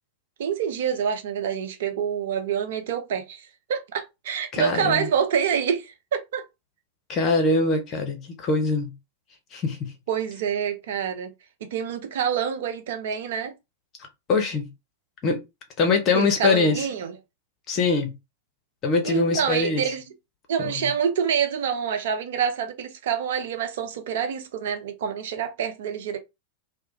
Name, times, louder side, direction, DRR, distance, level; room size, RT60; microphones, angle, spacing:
voice 1, 0.4-6.5 10.1-11.3 11.6-13.5 16.1-17.2 19.0-20.1 20.5-26.2, right 7 dB, 55° right, 0.4 m, -27 dB
voice 2, 4.5-5.1 7.1-8.9 9.5-9.8 14.3-14.7 15.2-15.4 15.8-16.8 17.7-18.1 18.8-19.8 20.6-20.8, left 3 dB, 35° left, 0.8 m, -23 dB
2.2 x 2.1 x 2.9 m
figure-of-eight pair, 90°, 0 cm